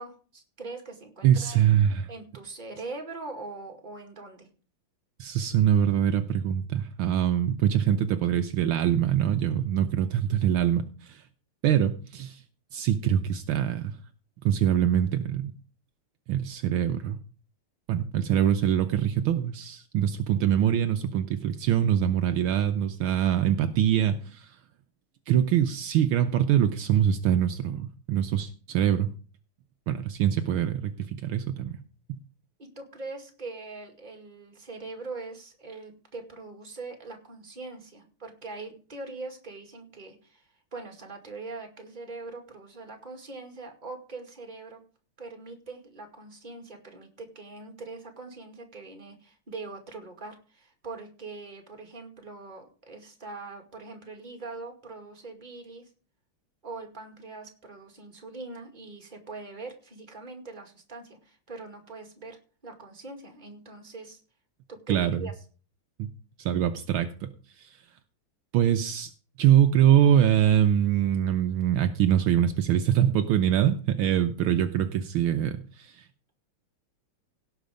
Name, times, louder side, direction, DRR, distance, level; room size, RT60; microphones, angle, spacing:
voice 1, 0.0-1.7 2.1-4.5 32.6-44.8 45.2-55.9 56.6-64.2 64.7-65.3, right 3 dB, 20° right, 4 dB, 2.2 m, -42 dB
voice 2, 1.2-2.1 5.2-11.2 11.6-12.4 12.7-13.9 14.4-15.5 16.3-17.2 17.9-24.5 25.3-29.1 29.9-31.8 64.9-65.3 66.0-66.1 66.4-67.3 67.6-67.7 68.5-69.1 69.4-76.0, right 10 dB, 75° right, 8 dB, 1.5 m, -24 dB
17.0 x 5.7 x 5.1 m, 0.38 s
omnidirectional pair, 2.4 m